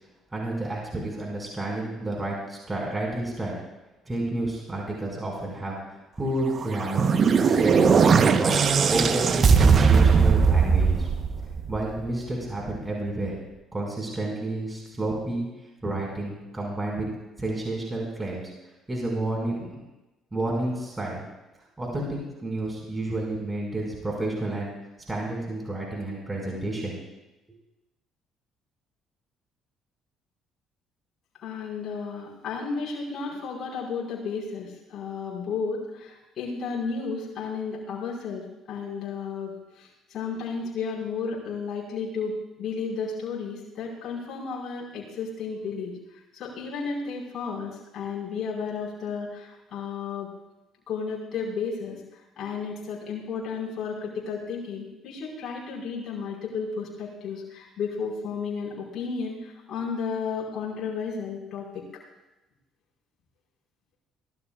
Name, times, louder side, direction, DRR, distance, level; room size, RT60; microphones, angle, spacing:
voice 1, 0.3-3.6 4.1-5.8 6.2-7.1 7.4-11.1 11.7-13.4 13.7-15.5 15.8-17.1 17.4-18.4 18.9-19.7 20.3-21.2 21.8-24.7 25.1-27.0, right 2 dB, 20° right, -2 dB, 5.8 m, -30 dB
sound 1, 6.6-11.9, right 5 dB, 40° right, 1.1 m, -19 dB
voice 2, 31.4-46.0 46.3-50.3 50.9-52.0 52.4-61.8, left 5 dB, 45° left, -4 dB, 5.1 m, -33 dB
23.5 x 17.5 x 2.5 m, 1.0 s
figure-of-eight pair, 50°, 0 cm